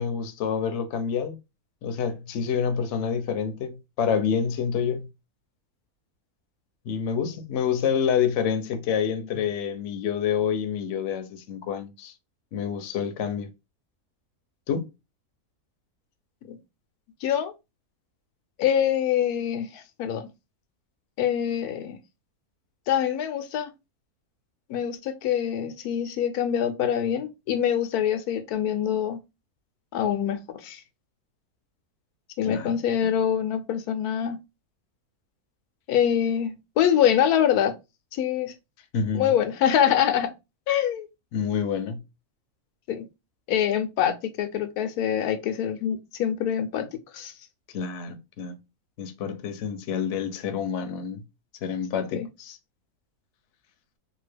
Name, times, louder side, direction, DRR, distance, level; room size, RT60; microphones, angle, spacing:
voice 1, 0.0-1.4 1.8-5.1 6.9-12.1 12.5-13.5 14.7-14.9 32.4-32.7 38.9-39.3 41.3-42.0 47.7-48.6 49.0-51.2 51.6-52.6, left 7 dB, 65° left, 0.8 m, -28 dB
voice 2, 17.2-17.5 18.6-20.3 21.2-22.0 22.9-23.7 24.7-29.2 29.9-30.8 32.4-34.4 35.9-37.7 38.1-38.5 39.1-40.3 40.7-41.1 42.9-43.0 43.5-46.9 47.1-47.3 52.1-52.3, left 9 dB, 90° left, 1.1 m, -25 dB
2.8 x 2.4 x 3.2 m
omnidirectional pair, 1.6 m